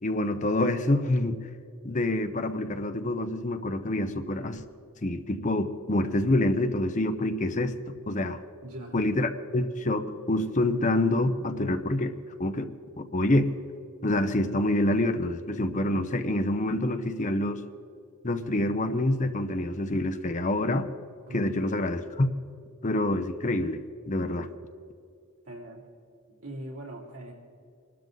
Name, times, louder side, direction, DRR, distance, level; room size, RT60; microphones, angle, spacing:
voice 1, 0.0-1.4 1.8-4.6 5.0-8.4 8.9-12.1 12.4-13.5 14.0-17.6 18.2-20.9 21.3-22.3 22.8-24.5, left 1 dB, 35° left, 9 dB, 0.7 m, -27 dB
voice 2, 8.6-9.0 21.3-21.5 25.4-25.9 26.3-27.3, right 1 dB, 90° right, -2 dB, 3.1 m, -41 dB
24.0 x 12.5 x 3.9 m, 2.5 s
head